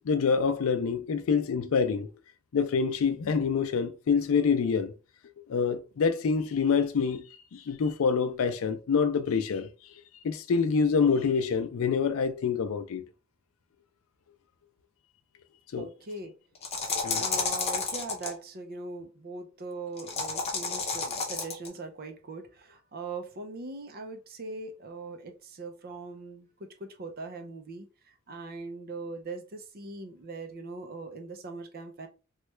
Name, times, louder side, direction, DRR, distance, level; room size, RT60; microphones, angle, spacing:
voice 1, 0.1-2.1 2.5-4.9 5.5-7.2 7.5-9.7 10.2-13.0 15.7-15.9 17.0-17.2, left 5 dB, 85° left, 0.4 m, -26 dB
voice 2, 15.7-16.3 17.2-32.1, right 3 dB, 50° right, 0.5 m, -41 dB
sound 1, 16.6-18.3 20.0-21.7, left 4 dB, 30° left, 0.7 m, -31 dB
3.1 x 2.2 x 3.0 m
head